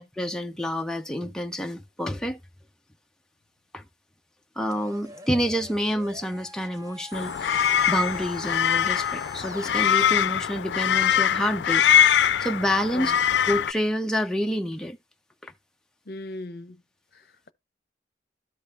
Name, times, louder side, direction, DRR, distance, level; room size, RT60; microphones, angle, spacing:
voice 1, 0.0-2.4 3.7-3.8 4.6-11.9 12.4-13.1 13.5-15.0 15.4-15.5, equal, 5° left, 0.4 m, -28 dB
sound 1, 4.7-9.8, right 1 dB, 20° right, 0.8 m, -45 dB
sound 2, 7.1-13.7, left 9 dB, 90° left, 0.4 m, -22 dB
voice 2, 16.1-16.8 17.1-17.5, left 2 dB, 60° left, 0.7 m, -38 dB
13.0 x 5.1 x 2.5 m
head